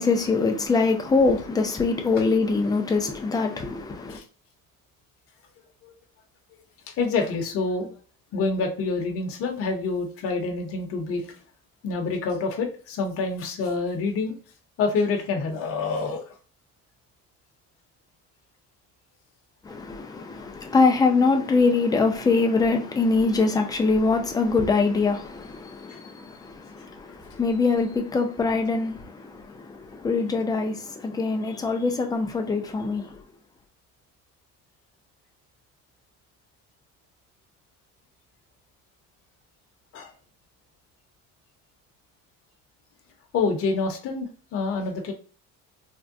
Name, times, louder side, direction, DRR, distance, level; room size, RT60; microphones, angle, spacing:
voice 1, 0.0-4.2 19.6-33.2, left 4 dB, 15° left, 0.4 m, -23 dB
voice 2, 6.9-7.9 8.3-11.2 11.8-14.4 14.8-16.2 39.9-40.1 43.3-45.1, left 4 dB, 45° left, 0.7 m, -27 dB
3.4 x 2.1 x 2.5 m
cardioid pair, 150°, 31 cm